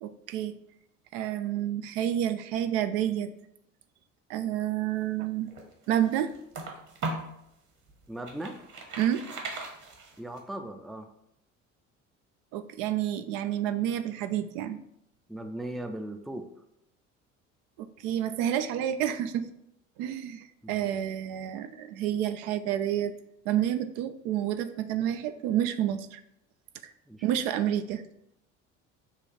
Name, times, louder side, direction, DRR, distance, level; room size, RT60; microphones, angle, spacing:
voice 1, 0.0-0.5 1.1-3.3 4.3-5.5 5.9-6.3 9.0-9.3 12.5-14.8 17.8-19.5 20.0-23.1 23.5-26.2 27.2-28.0, right 11 dB, 65° right, 10 dB, 0.5 m, -29 dB
sound 1, 5.3-7.4 7.9-10.4, right 2 dB, 50° right, 1.3 m, -38 dB
voice 2, 8.1-8.6 10.2-11.1 15.3-16.4 20.6-20.9 27.1-27.3, right 1 dB, ahead, 5 dB, 0.4 m, -38 dB
6.5 x 2.4 x 3.2 m, 0.78 s
hypercardioid pair, 60°, 38 cm